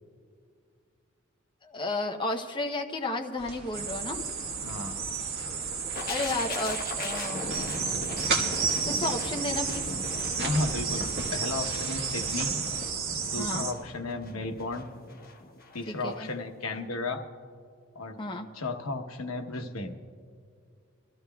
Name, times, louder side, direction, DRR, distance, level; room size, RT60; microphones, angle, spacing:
voice 1, 1.6-4.2 5.9-7.6 8.8-10.0 13.4-13.6 15.9-16.3 18.2-18.5, left 2 dB, 25° left, 3 dB, 0.7 m, -33 dB
sound 1, 3.4-12.9, right 3 dB, 55° right, 1.7 m, -39 dB
sound 2, 3.7-13.7, right 6 dB, 75° right, 1.4 m, -32 dB
voice 2, 4.6-5.0 10.4-12.5 13.2-14.9 15.7-17.2 17.9-18.2 18.5-19.9, left 2 dB, 85° left, 5 dB, 1.0 m, -33 dB
sound 3, 6.0-15.8 16.1-16.3, left 2 dB, 45° left, 1.1 m, -39 dB
24.5 x 14.0 x 2.3 m, 2.2 s
head